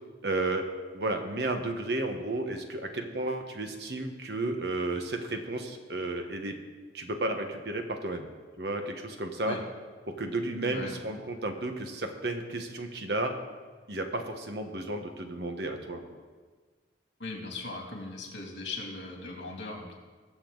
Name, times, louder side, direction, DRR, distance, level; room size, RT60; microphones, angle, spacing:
voice 1, 0.2-0.7 0.9-6.6 6.9-8.3 8.6-9.6 10.1-13.3 13.9-16.0, right 2 dB, 60° right, 5 dB, 1.3 m, -32 dB
voice 2, 10.7-11.0 17.2-19.9, left 3 dB, 75° left, 0 dB, 2.7 m, -39 dB
21.0 x 7.0 x 4.0 m, 1.4 s
head